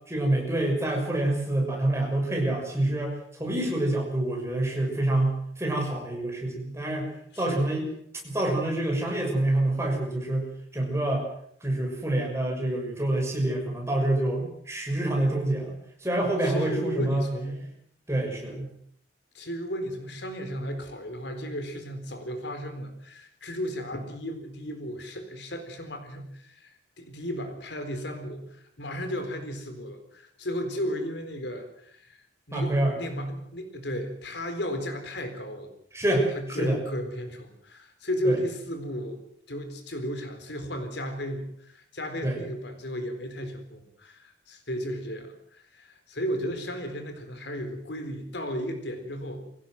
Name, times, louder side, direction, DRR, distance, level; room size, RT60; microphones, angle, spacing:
voice 1, 0.1-7.1 7.4-7.9 8.2-10.5 10.7-11.2 11.6-17.2 18.1-18.7 32.5-32.9 35.9-36.8 38.2-38.4 42.2-42.4, right 1 dB, 15° right, 1 dB, 6.4 m, -27 dB
voice 2, 7.3-7.7 16.4-17.7 19.3-35.7 36.3-39.2 39.5-49.4, equal, 70° left, 7 dB, 4.2 m, -34 dB
24.0 x 16.5 x 7.8 m, 0.67 s
head